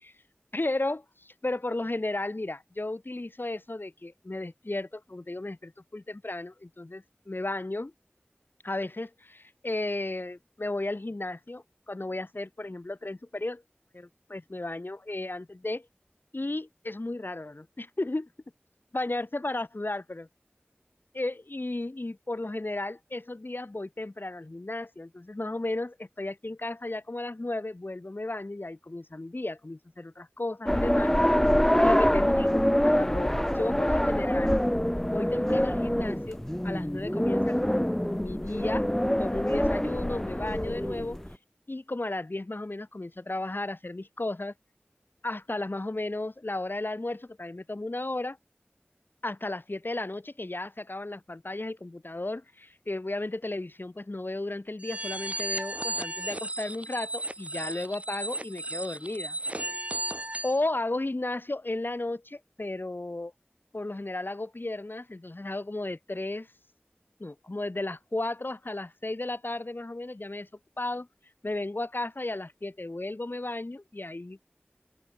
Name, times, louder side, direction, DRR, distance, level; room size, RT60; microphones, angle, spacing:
voice 1, 0.5-7.9 8.6-13.6 13.9-15.9 16.3-18.3 18.9-20.3 21.1-31.1 31.8-34.5 35.0-36.4 36.6-38.9 39.2-41.2 41.7-44.5 45.2-48.4 49.2-59.8 60.4-63.3 63.7-66.5 67.2-70.5 70.8-71.1 71.4-74.4, left 2 dB, 60° left, 3.6 m, -34 dB
sound 1, 30.7-41.3, equal, 10° left, 0.7 m, -25 dB
sound 2, 54.8-60.6, right 1 dB, 35° right, 4.9 m, -34 dB
open air
wide cardioid pair, 45°, 4 cm